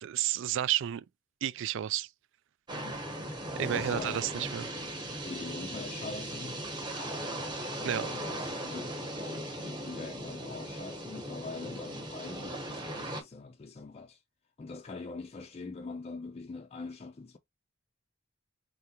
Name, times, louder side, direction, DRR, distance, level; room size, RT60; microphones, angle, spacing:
voice 1, 0.0-1.0 1.4-2.1 3.6-4.7 7.8-8.1, right 11 dB, 60° right, 0.3 m, -31 dB
voice 2, 2.7-3.1 3.5-4.5 5.2-6.6 7.7-14.2 14.6-17.4, left 3 dB, 30° left, 0.4 m, -43 dB
sound 1, 2.7-13.2, right 1 dB, 20° right, 1.1 m, -38 dB
3.7 x 3.4 x 2.9 m
head